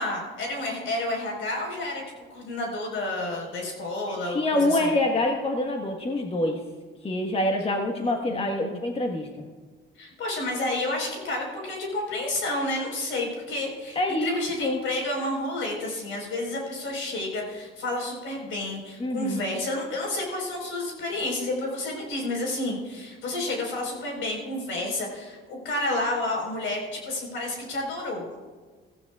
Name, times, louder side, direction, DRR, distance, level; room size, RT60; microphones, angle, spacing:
voice 1, 0.0-2.0 2.3-4.9 8.0-8.1 8.3-8.8 10.0-28.4, left 2 dB, 85° left, -1 dB, 4.5 m, -30 dB
voice 2, 4.2-6.6 7.0-9.3 13.9-14.8 19.0-19.5, left 1 dB, 30° left, 2 dB, 1.3 m, -26 dB
15.5 x 15.5 x 2.4 m, 1.4 s
cardioid pair, 90°, 20 cm